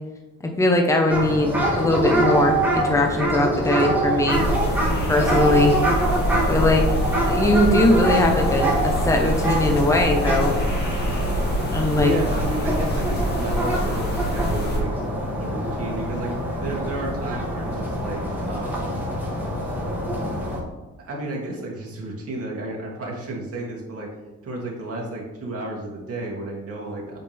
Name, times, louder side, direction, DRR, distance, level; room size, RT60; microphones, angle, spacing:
voice 1, 0.4-4.4 5.1-5.7 6.5-6.8 7.3-10.5 11.7-12.1, left 1 dB, 10° left, 2 dB, 1.1 m, -20 dB
sound 1, 1.1-20.6, right 1 dB, 5° right, 2.4 m, -25 dB
sound 2, 4.3-14.8, equal, 35° left, 2.2 m, -26 dB
voice 2, 12.0-16.3 16.6-19.0 21.0-24.1 24.4-27.2, right 2 dB, 50° right, -2 dB, 2.5 m, -32 dB
7.6 x 6.0 x 3.5 m, 1.1 s
cardioid pair, 90°, 30 cm